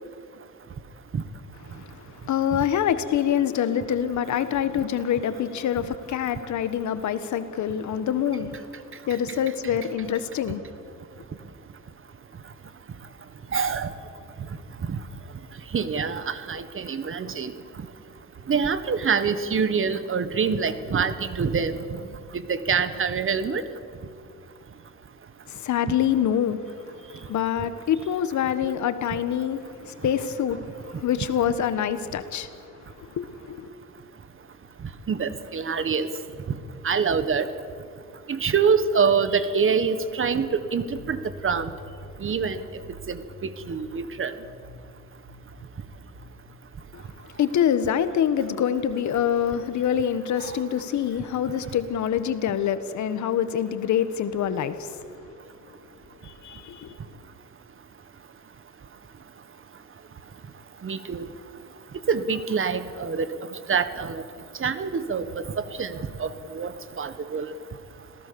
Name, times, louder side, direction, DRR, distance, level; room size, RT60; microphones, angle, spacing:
voice 1, 1.7-8.7 9.1-10.7 25.5-26.6 27.2-33.7 46.9-47.0 47.4-55.0 56.2-56.9, left 9 dB, 70° left, 1.4 m, -26 dB
voice 2, 13.5-13.9 14.9-15.0 15.7-17.5 18.5-21.8 22.3-23.6 35.1-36.1 36.8-37.5 38.3-41.2 41.4-41.7 42.2-42.6 43.1-44.3 50.4-50.6 60.8-61.3 62.1-63.3 63.7-64.2 64.6-65.2 65.8-67.5, right 6 dB, 45° right, 1.5 m, -25 dB
sound 1, 40.8-43.3 43.6-44.1 44.4-44.9 45.2-46.4, right 1 dB, 65° right, 6.4 m, -45 dB
26.0 x 17.0 x 7.0 m
cardioid pair, 90°, 30 cm